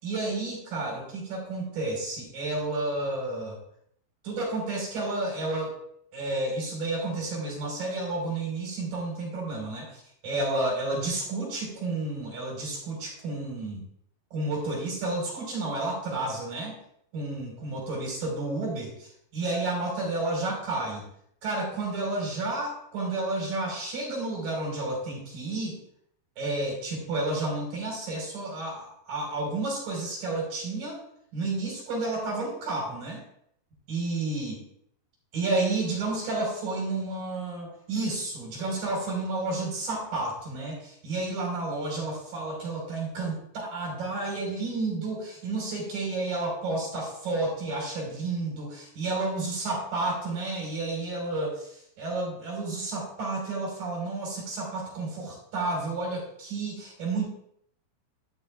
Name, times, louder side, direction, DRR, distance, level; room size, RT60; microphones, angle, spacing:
voice 1, 0.0-3.6 4.2-5.8 6.1-13.8 14.3-16.8 17.1-21.1 21.4-25.7 26.4-31.0 31.3-33.2 33.9-34.6 35.3-57.3, right 2 dB, 75° right, -2 dB, 6.5 m, -31 dB
14.0 x 13.0 x 2.5 m, 0.69 s
omnidirectional pair, 4.0 m